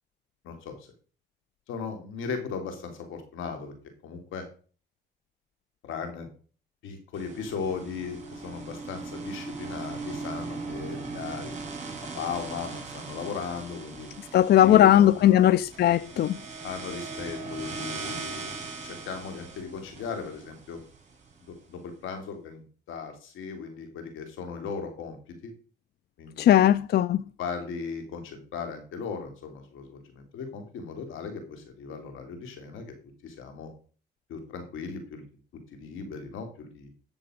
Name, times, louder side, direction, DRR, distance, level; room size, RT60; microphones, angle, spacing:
voice 1, 0.4-0.9 1.7-3.7 4.0-4.5 5.8-6.3 6.8-11.5 12.1-14.1 14.6-15.6 16.6-18.5 18.8-20.8 21.5-25.2 25.4-25.5 26.2-26.8 27.4-32.9 33.2-33.7 34.3-35.2 35.7-36.9, left 5 dB, 85° left, 3.1 m, -37 dB
sound 1, 7.1-21.3, right 3 dB, 35° right, 5.7 m, -39 dB
voice 2, 14.3-16.4 26.4-27.2, left 11 dB, 55° left, 0.4 m, -18 dB
12.5 x 7.0 x 5.2 m
cardioid pair, 90°, 20 cm